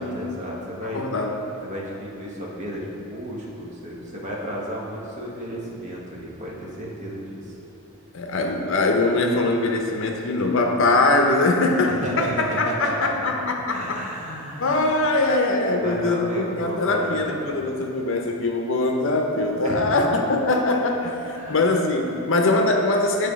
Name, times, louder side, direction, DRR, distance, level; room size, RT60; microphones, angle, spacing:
voice 1, 0.0-1.0 1.6-7.5 8.4-8.5 11.8-12.3 12.7-13.1 13.7-14.9 15.8-17.6 19.6-20.1 21.3-21.7, equal, 35° right, -4 dB, 1.1 m, -33 dB
voice 2, 0.8-1.4 8.1-14.0 14.6-23.3, left 2 dB, 60° left, 3 dB, 0.6 m, -22 dB
8.9 x 3.4 x 5.1 m, 2.9 s
head